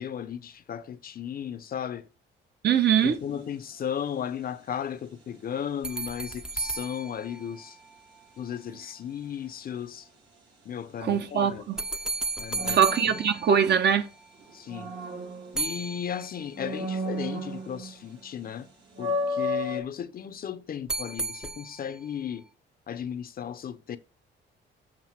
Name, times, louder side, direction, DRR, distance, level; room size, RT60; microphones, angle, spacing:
voice 1, 0.0-2.0 3.0-7.8 8.4-10.1 10.6-11.7 12.4-13.1 14.5-14.9 15.5-18.7 19.0-22.5 22.9-24.0, left 8 dB, 50° left, 0.6 m, -35 dB
voice 2, 2.6-3.2 11.0-11.8 12.7-14.1, right 8 dB, 55° right, 0.9 m, -22 dB
sound 1, 2.9-3.2 12.5-14.0 14.4-16.0 16.5-18.1 18.4-18.5 18.9-19.8, left 1 dB, 75° right, 2.3 m, -33 dB
sound 2, 5.8-8.2 11.8-14.3 15.6-16.7 20.9-22.1, right 3 dB, 5° right, 0.5 m, -35 dB
7.3 x 2.7 x 5.8 m
cardioid pair, 90°, 20 cm